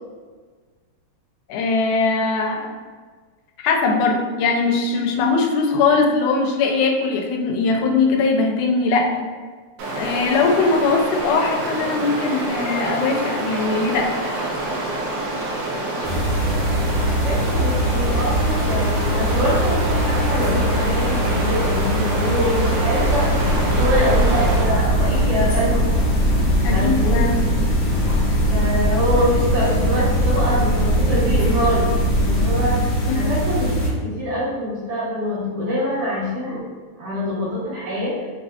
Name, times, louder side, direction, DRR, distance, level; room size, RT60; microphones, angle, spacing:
voice 1, 1.5-2.7 3.6-9.3 9.9-14.1 26.6-27.4 33.1-33.3, left 4 dB, 90° left, 2 dB, 2.0 m, -20 dB
Stream, 9.8-24.9, right 2 dB, 90° right, 2.1 m, -27 dB
sound 1, 16.0-33.9, equal, 60° left, 1.4 m, -22 dB
voice 2, 17.2-23.4 23.8-25.8 26.7-27.2 28.5-32.9 33.1-36.6 37.0-38.1, equal, 70° right, -9 dB, 2.5 m, -24 dB
sound 2, 22.6-32.8, equal, 50° right, 0.5 m, -23 dB
5.5 x 2.5 x 2.3 m, 1.5 s
omnidirectional pair, 3.5 m